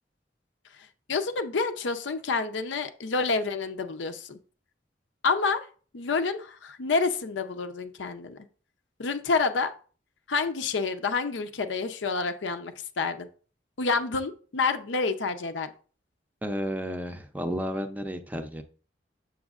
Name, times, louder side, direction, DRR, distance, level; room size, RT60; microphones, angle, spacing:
voice 1, 1.1-4.4 5.2-5.7 5.9-8.5 9.0-9.7 10.3-13.3 13.8-15.7, left 4 dB, 85° left, 8 dB, 0.6 m, -28 dB
voice 2, 16.4-18.6, equal, 10° right, 7 dB, 0.5 m, -32 dB
7.1 x 6.2 x 2.4 m, 0.40 s
head